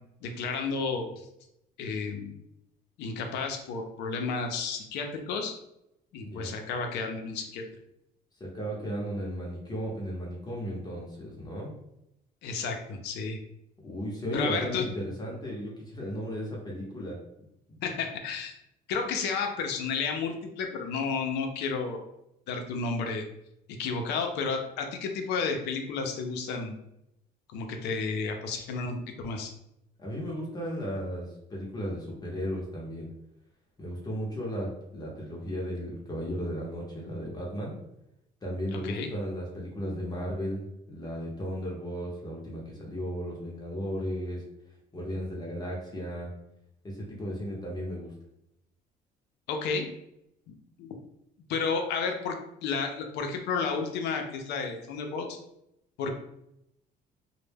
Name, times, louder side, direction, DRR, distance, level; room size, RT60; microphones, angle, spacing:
voice 1, 0.2-1.3 1.8-2.4 3.0-5.5 6.1-7.6 12.4-13.4 14.3-14.9 17.8-18.5 18.9-22.0 22.5-23.2 23.8-26.7 27.5-29.0 29.2-29.5 38.7-39.1 49.5-49.9 50.8-50.9 51.5-52.4 52.6-55.4 56.0-56.1, left 4 dB, 85° left, 4 dB, 0.5 m, -32 dB
voice 2, 6.2-6.5 8.4-11.7 13.8-17.2 17.7-17.8 30.0-33.1 33.8-37.7 38.4-44.4 44.9-46.3 46.8-48.1, equal, 25° left, -3 dB, 0.7 m, -35 dB
2.1 x 2.1 x 3.3 m, 0.81 s
cardioid pair, 110°, 17 cm